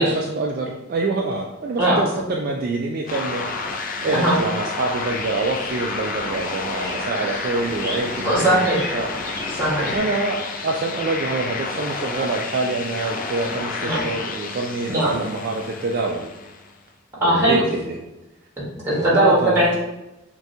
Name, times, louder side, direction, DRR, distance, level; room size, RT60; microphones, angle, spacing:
voice 1, 0.0-9.1 9.9-16.3 17.2-18.0 19.0-19.6, right 3 dB, 45° right, 1 dB, 0.3 m, -26 dB
sound 1, 3.1-16.8, left 3 dB, 40° left, 0.4 m, -30 dB
Bird vocalization bird call bird song, 4.9-10.0, left 1 dB, 15° left, 1.3 m, -37 dB
voice 2, 8.2-8.9 9.5-9.9 13.8-14.0 14.9-15.1 17.2-17.6 18.7-19.7, right 1 dB, 15° right, -6 dB, 1.5 m, -19 dB
5.9 x 2.3 x 2.7 m, 0.95 s
head